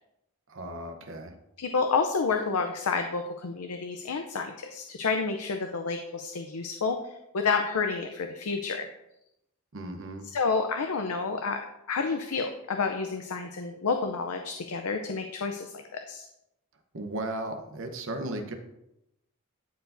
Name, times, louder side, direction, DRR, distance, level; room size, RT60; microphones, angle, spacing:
voice 1, 0.5-1.3 9.7-10.2 16.9-18.5, right 1 dB, 60° right, 5 dB, 0.9 m, -35 dB
voice 2, 1.6-8.9 10.2-11.6 11.9-16.2, left 4 dB, 90° left, 5 dB, 0.6 m, -29 dB
12.0 x 4.8 x 2.6 m, 0.86 s
head